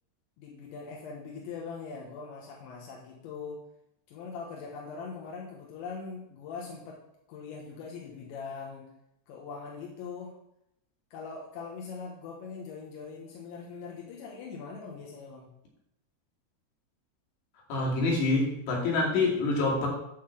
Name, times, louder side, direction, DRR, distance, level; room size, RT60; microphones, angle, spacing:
voice 1, 0.4-3.6 4.1-7.0 7.3-8.8 9.3-10.3 11.1-15.5, left 5 dB, 90° left, -3 dB, 3.7 m, -41 dB
voice 2, 17.7-19.9, left 3 dB, 75° left, -3 dB, 4.5 m, -26 dB
11.5 x 4.0 x 7.3 m, 0.81 s
omnidirectional pair, 5.0 m